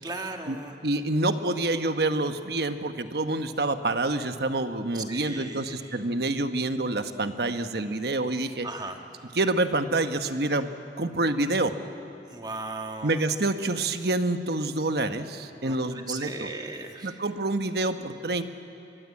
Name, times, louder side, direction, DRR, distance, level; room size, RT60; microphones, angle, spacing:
voice 1, 0.0-0.7 4.9-6.0 8.6-9.0 12.3-13.1 15.6-17.2, right 3 dB, 25° right, 3 dB, 1.4 m, -37 dB
voice 2, 0.8-8.7 9.3-10.7 11.0-11.7 13.0-16.5 17.0-18.4, right 2 dB, 65° right, 8 dB, 1.2 m, -27 dB
24.5 x 21.5 x 8.5 m, 2.7 s
head